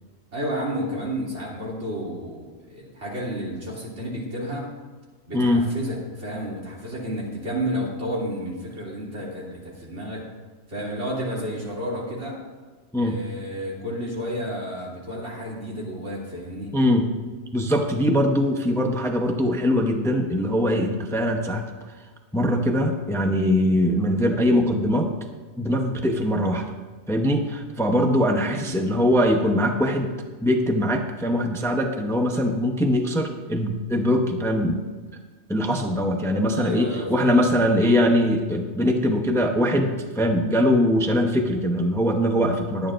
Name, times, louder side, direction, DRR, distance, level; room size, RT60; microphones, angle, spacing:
voice 1, 0.3-4.7 5.3-10.2 10.7-12.4 13.0-16.7 28.5-29.0 36.6-37.6, equal, 80° right, -4 dB, 3.3 m, -31 dB
voice 2, 5.3-5.7 12.9-13.2 16.7-17.1 17.5-21.7 22.3-25.1 25.6-26.6 27.1-30.1 30.4-34.8 35.5-42.9, equal, 5° left, 3 dB, 0.7 m, -22 dB
21.0 x 9.3 x 2.6 m, 1.4 s
omnidirectional pair, 1.2 m